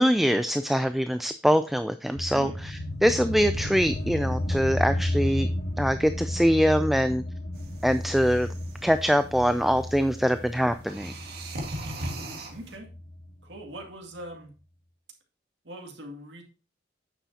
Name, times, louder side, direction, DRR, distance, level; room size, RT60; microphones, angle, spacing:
voice 1, 0.0-5.5 5.8-7.2 7.8-8.5 8.8-11.1, equal, ahead, 10 dB, 0.3 m, -23 dB
sound 1, 2.2-13.2, left 1 dB, 65° left, 1.7 m, -32 dB
sound 2, 7.5-12.8, right 1 dB, 55° right, 1.8 m, -40 dB
voice 2, 12.5-12.9 13.4-14.5 15.6-16.4, right 1 dB, 80° right, 2 dB, 2.3 m, -41 dB
9.0 x 7.1 x 2.8 m, 0.34 s
head